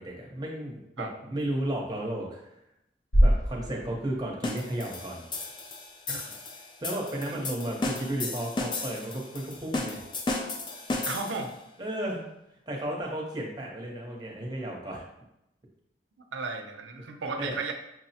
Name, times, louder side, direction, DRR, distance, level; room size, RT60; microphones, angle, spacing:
voice 1, 0.0-2.5 3.2-5.2 6.1-6.3 6.8-10.0 10.9-11.1 11.8-12.3 12.7-15.0 17.4-17.6, right 1 dB, 20° right, -2 dB, 0.7 m, -34 dB
sound 1, 3.1-5.2, equal, 60° left, 0.7 m, -25 dB
sound 2, 4.4-11.5, left 2 dB, 25° left, 0.3 m, -34 dB
voice 2, 11.1-11.6 16.3-17.7, right 4 dB, 85° right, 5 dB, 0.5 m, -34 dB
6.0 x 2.0 x 2.8 m, 0.84 s
head